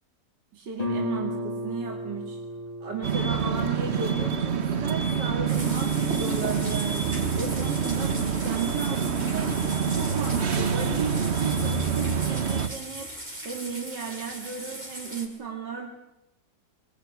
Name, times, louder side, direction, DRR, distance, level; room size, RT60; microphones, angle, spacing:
voice 1, 0.5-2.4 2.8-9.5 9.9-13.1 13.4-15.9, right 5 dB, 80° right, 2 dB, 2.9 m, -35 dB
Guitar, 0.8-6.2, equal, 20° left, 2.8 m, -36 dB
sound 1, 3.0-12.7, right 6 dB, 40° right, 1.3 m, -26 dB
sound 2, 5.5-15.3, right 1 dB, 25° right, 5.0 m, -39 dB
24.5 x 19.5 x 9.4 m, 0.96 s
omnidirectional pair, 1.8 m